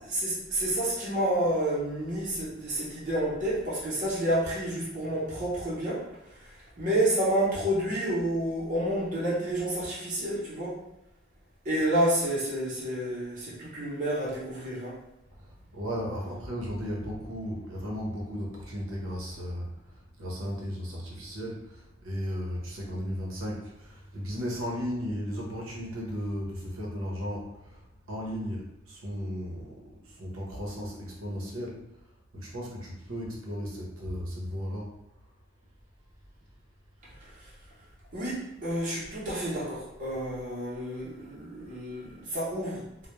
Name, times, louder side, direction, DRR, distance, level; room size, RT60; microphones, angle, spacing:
voice 1, 0.1-6.1 6.4-10.8 11.6-15.0 16.2-16.3 37.2-37.3 38.1-43.1, right 1 dB, 40° right, -9 dB, 0.7 m, -29 dB
voice 2, 15.4-31.8 32.3-35.0, equal, 80° right, -3 dB, 0.7 m, -35 dB
2.2 x 2.1 x 3.0 m, 0.86 s
head